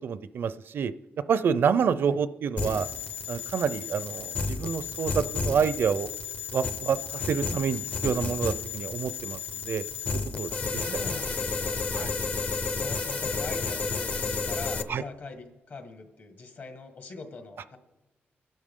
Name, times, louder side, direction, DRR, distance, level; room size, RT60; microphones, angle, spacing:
voice 1, 0.0-0.9 1.3-2.9 3.3-6.1 6.5-9.4 9.7-9.8 10.4-10.8 11.9-12.1 14.9-15.0, right 7 dB, 65° right, 15 dB, 0.5 m, -28 dB
sound 1, 2.6-14.8, left 4 dB, 40° left, 0.7 m, -32 dB
voice 2, 10.5-11.9 12.8-17.8, left 3 dB, 55° left, 6 dB, 1.7 m, -42 dB
23.5 x 11.5 x 3.7 m, 1.1 s
wide cardioid pair, 150°, 4 cm